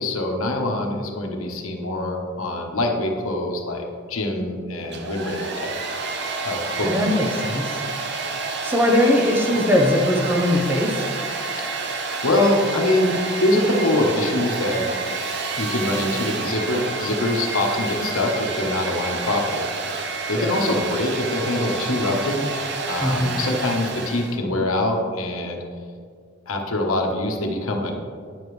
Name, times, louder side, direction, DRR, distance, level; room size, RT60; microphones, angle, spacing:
voice 1, 0.0-5.7 6.4-7.0 11.6-11.7 12.2-14.9 15.6-19.7 20.3-22.5 22.8-25.6 26.5-27.9, left 1 dB, 85° left, 2 dB, 1.1 m, -24 dB
Domestic sounds home sounds, 4.8-24.4, right 3 dB, 50° right, 0.7 m, -29 dB
voice 2, 6.8-7.8 8.6-11.0 20.3-20.6 23.0-23.4, left 1 dB, 10° right, 0 dB, 0.8 m, -20 dB
9.7 x 7.1 x 3.2 m, 2.1 s
head